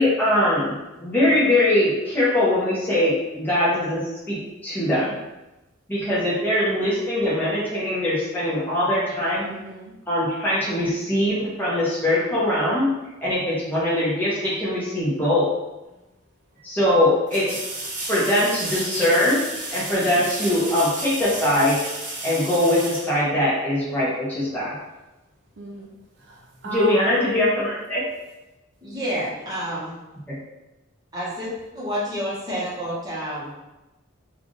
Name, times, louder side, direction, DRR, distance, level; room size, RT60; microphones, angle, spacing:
voice 1, 0.0-5.1 5.9-9.4 10.1-12.9 13.2-15.4 16.6-17.6 18.1-19.4 19.7-21.8 22.2-24.7 26.6-28.0 30.3-30.4, left 1 dB, 10° left, -9 dB, 1.1 m, -22 dB
voice 2, 9.4-9.9 18.6-19.0 25.6-25.9 26.3-27.2, right 1 dB, 60° right, -1 dB, 0.5 m, -36 dB
sound 1, 15.9-16.0 17.3-23.9 26.7-26.8, right 2 dB, 35° right, 0.8 m, -32 dB
voice 3, 28.8-29.9 31.1-31.5 31.7-33.5, equal, 20° right, -8 dB, 1.1 m, -29 dB
3.4 x 2.6 x 3.8 m, 1.0 s
head